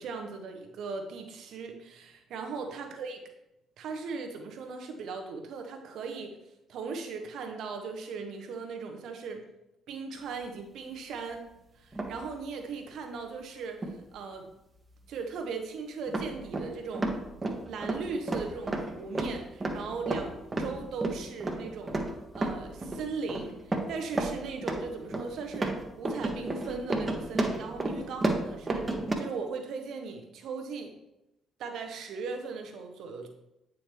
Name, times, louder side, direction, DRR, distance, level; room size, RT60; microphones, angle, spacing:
voice 1, 0.0-3.2 3.8-6.4 6.7-9.4 9.9-11.4 11.8-14.5 15.1-17.1 17.7-22.0 22.3-30.9 31.6-33.3, right 4 dB, 60° right, 4 dB, 1.0 m, -38 dB
sound 1, 11.9-12.3 13.8-14.0 14.9-15.0 16.1-29.1, right 2 dB, 25° right, 1.1 m, -32 dB
8.7 x 5.0 x 3.1 m, 0.89 s
figure-of-eight pair, 45°, 0 cm